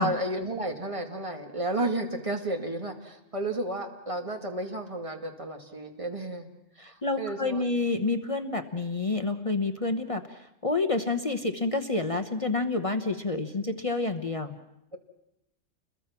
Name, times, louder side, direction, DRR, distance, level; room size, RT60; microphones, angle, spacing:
voice 1, 0.0-6.5 6.8-7.6, right 2 dB, 25° right, 4 dB, 2.2 m, -32 dB
voice 2, 6.8-14.5, left 3 dB, 30° left, 8 dB, 1.0 m, -29 dB
29.0 x 22.0 x 6.0 m, 0.85 s
omnidirectional pair, 1.4 m